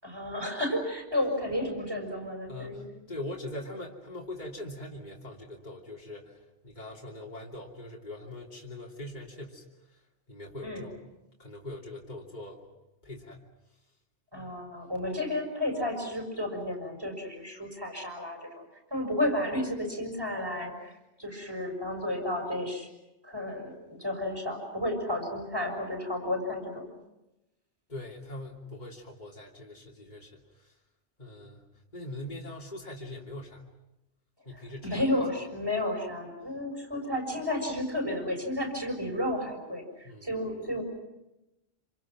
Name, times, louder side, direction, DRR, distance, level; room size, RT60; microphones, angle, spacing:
voice 1, 0.0-2.9 10.6-10.9 14.3-18.6 18.9-20.9 21.2-22.9 23.2-26.9 34.5-40.8, left 1 dB, 20° right, 3 dB, 6.5 m, -32 dB
voice 2, 2.5-6.3 6.6-9.6 10.3-11.1 11.4-12.6 13.0-13.4 14.3-14.5 27.9-30.7 31.2-31.6 31.9-33.6 34.4-35.0 40.0-40.3, left 1 dB, 35° left, -2 dB, 3.2 m, -42 dB
28.0 x 27.5 x 6.2 m, 0.95 s
omnidirectional pair, 1.3 m